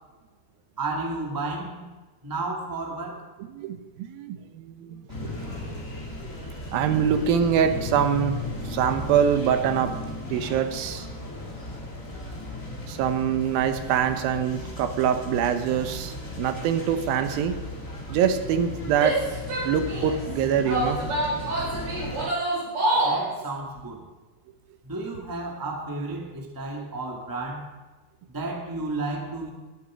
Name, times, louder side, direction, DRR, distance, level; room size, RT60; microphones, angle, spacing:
voice 1, 0.8-1.9 2.2-3.3 22.9-24.0 24.8-27.7 28.3-29.5, right 2 dB, 10° right, 0 dB, 1.0 m, -32 dB
voice 2, 3.5-5.0 6.7-10.0 10.3-11.1 12.9-17.6 18.1-19.2 19.6-21.0, right 8 dB, 80° right, 9 dB, 2.6 m, -24 dB
sound 1, 5.1-22.3, left 2 dB, 25° left, 2.1 m, -36 dB
Female speech woman speaking / Yell, 18.9-20.2 20.7-23.3, right 1 dB, 50° right, 5.6 m, -26 dB
21.0 x 7.9 x 5.0 m, 1.3 s
omnidirectional pair, 4.3 m